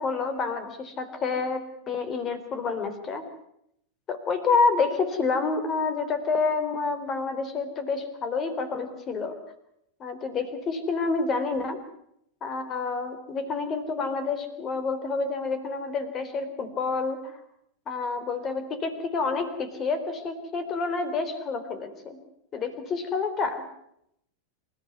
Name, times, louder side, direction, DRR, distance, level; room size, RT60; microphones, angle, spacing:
voice 1, 0.0-3.2 4.1-9.4 10.0-11.8 12.4-17.4 17.9-22.2 22.5-23.6, left 4 dB, 25° left, 11 dB, 3.8 m, -28 dB
28.0 x 14.5 x 9.4 m, 0.76 s
figure-of-eight pair, 90°, 0 cm